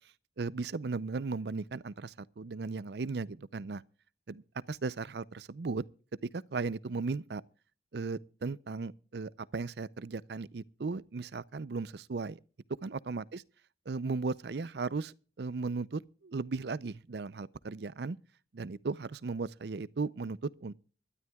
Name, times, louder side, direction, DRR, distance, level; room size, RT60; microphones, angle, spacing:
voice 1, 0.4-3.8 4.3-4.4 4.7-5.8 6.3-7.4 7.9-12.4 12.8-13.4 13.9-18.2 18.5-20.8, right 4 dB, 60° right, 0.5 m, -36 dB
25.0 x 12.5 x 2.3 m
head